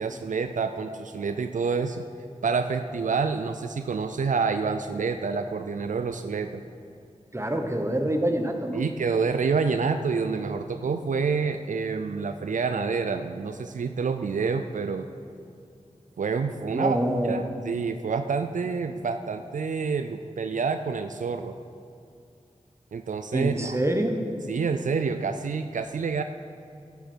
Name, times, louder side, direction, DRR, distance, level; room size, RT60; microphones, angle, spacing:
voice 1, 0.0-2.0 2.4-6.6 8.7-15.1 16.2-17.0 17.2-21.5 22.9-23.8 24.5-26.2, right 5 dB, 80° right, 8 dB, 0.4 m, -28 dB
voice 2, 7.3-8.8 16.7-17.4 23.3-24.2, right 1 dB, 20° right, 4 dB, 1.2 m, -26 dB
12.0 x 9.0 x 4.5 m, 2.5 s
wide cardioid pair, 50°, 13 cm